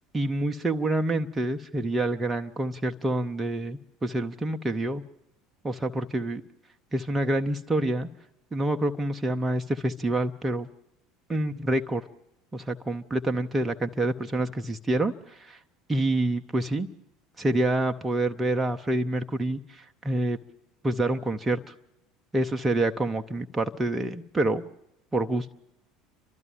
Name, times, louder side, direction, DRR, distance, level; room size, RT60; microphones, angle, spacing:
voice 1, 0.1-5.0 5.6-6.4 6.9-8.1 8.5-10.7 11.3-12.0 12.5-15.6 15.9-16.9 17.4-20.4 20.8-21.7 22.3-24.6 25.1-25.5, right 1 dB, 20° right, 5 dB, 0.8 m, -27 dB
29.5 x 12.5 x 7.3 m, 0.83 s
figure-of-eight pair, 70°, 0 cm